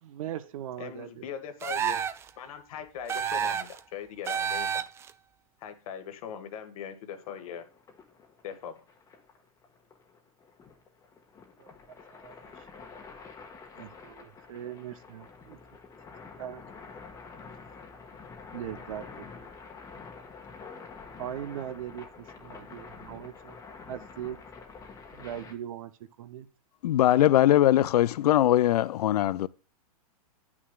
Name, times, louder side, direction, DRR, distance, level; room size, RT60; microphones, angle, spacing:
voice 1, 0.0-1.2 11.6-11.7 12.2-12.4 13.8-15.6 16.4-16.6 18.5-19.2 21.2-22.1 22.4-23.6 23.9-24.4 25.1-25.9 26.2-26.5, right 11 dB, 60° right, 0.7 m, -39 dB
voice 2, 0.8-2.0 2.4-4.8 5.6-7.6 8.4-8.8, left 8 dB, 65° left, 1.5 m, -40 dB
sound 1, 1.6-2.3 3.1-3.8 4.3-5.1, right 8 dB, 15° right, 0.3 m, -30 dB
sound 2, 7.2-25.6, left 4 dB, 15° left, 1.3 m, -48 dB
voice 3, 26.8-29.5, left 13 dB, 85° left, 0.4 m, -21 dB
9.5 x 6.0 x 2.2 m
hypercardioid pair, 140°, 19 cm